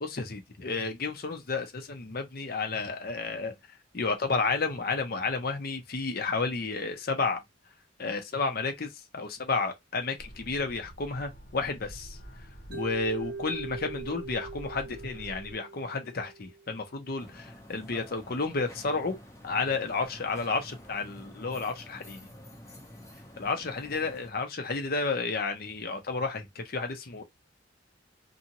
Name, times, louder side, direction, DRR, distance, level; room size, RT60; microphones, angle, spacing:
voice 1, 0.0-3.5 3.9-7.4 8.0-12.2 12.7-19.2 19.4-22.3 23.4-27.2, left 4 dB, 50° left, 0.7 m, -31 dB
sound 1, 10.2-15.5, equal, 65° left, 1.2 m, -48 dB
Mallet percussion, 12.7-16.8, right 4 dB, 55° right, 0.5 m, -41 dB
sound 2, 17.2-24.3, left 1 dB, 15° left, 0.7 m, -49 dB
2.7 x 2.4 x 2.8 m
head